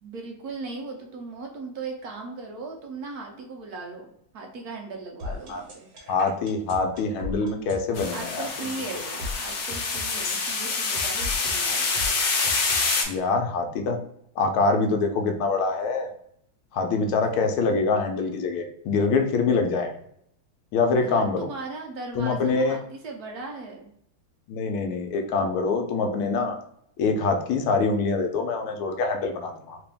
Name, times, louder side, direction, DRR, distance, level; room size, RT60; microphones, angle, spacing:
voice 1, 0.0-4.1 4.3-5.9 8.1-11.9 20.9-23.9, right 3 dB, 70° right, 1 dB, 0.9 m, -38 dB
sound 1, 5.2-13.2, left 1 dB, 55° right, 1.2 m, -37 dB
voice 2, 6.1-8.5 13.1-14.0 14.4-16.1 16.7-19.9 20.7-21.5 22.2-22.8 24.5-26.6 27.0-29.8, left 4 dB, 80° left, 5 dB, 1.5 m, -24 dB
sound 2, 8.0-13.0, left 4 dB, 65° left, 1.3 m, -26 dB
3.3 x 2.9 x 3.4 m, 0.72 s
omnidirectional pair, 2.3 m